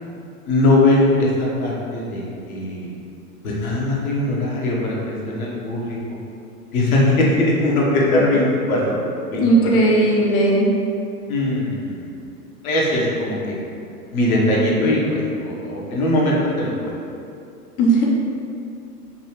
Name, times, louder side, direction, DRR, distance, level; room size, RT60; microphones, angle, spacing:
voice 1, 0.5-2.2 2.5-2.9 3.4-6.0 6.7-9.0 9.3-9.4 10.0-10.1 11.3-12.1 12.6-13.5 14.1-16.9, left 1 dB, 65° left, -4 dB, 1.2 m, -20 dB
voice 2, 9.4-10.7 17.8-18.0, right 2 dB, 25° left, -4 dB, 0.4 m, -16 dB
5.4 x 2.3 x 3.1 m, 2.6 s
hypercardioid pair, 100°, 46 cm